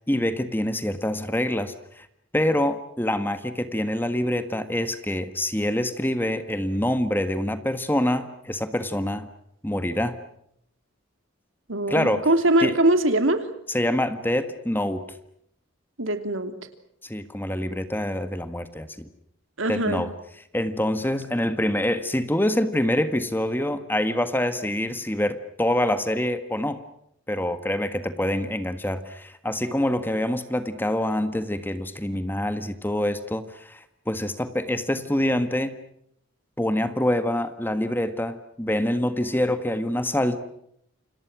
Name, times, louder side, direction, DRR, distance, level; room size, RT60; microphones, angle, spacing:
voice 1, 0.1-2.1 2.3-9.3 9.6-10.2 11.9-12.3 12.6-12.8 13.7-15.0 17.0-19.1 19.7-20.1 20.5-26.8 27.3-35.8 36.6-40.4, left 1 dB, 10° left, 10 dB, 1.5 m, -26 dB
voice 2, 11.7-13.5 16.0-16.5 19.6-20.1, right 1 dB, 75° right, 9 dB, 2.9 m, -22 dB
29.5 x 26.5 x 6.2 m, 0.73 s
head